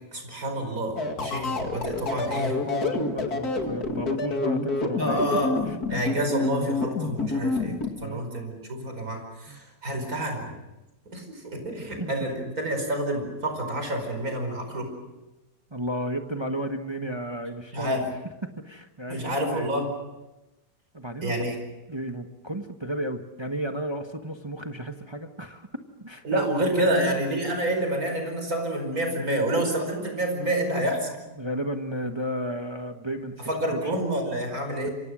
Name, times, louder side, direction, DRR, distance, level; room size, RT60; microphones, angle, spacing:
voice 1, 0.1-2.6 5.0-5.5 5.9-10.5 11.1-14.9 17.7-18.1 19.1-19.9 21.2-21.5 26.2-31.2 33.4-34.9, right 1 dB, 55° right, 5 dB, 5.5 m, -28 dB
sound 1, 1.0-7.9, left 3 dB, 65° left, 2.9 m, -28 dB
voice 2, 2.2-5.2 8.0-8.3 9.5-9.6 12.0-12.1 15.7-18.0 18.4-19.7 20.9-21.3 21.9-25.7 26.0-26.4 26.8-27.2 31.4-34.0, right 1 dB, 15° right, 5 dB, 1.2 m, -33 dB
28.0 x 25.0 x 6.3 m, 1.1 s
omnidirectional pair, 1.8 m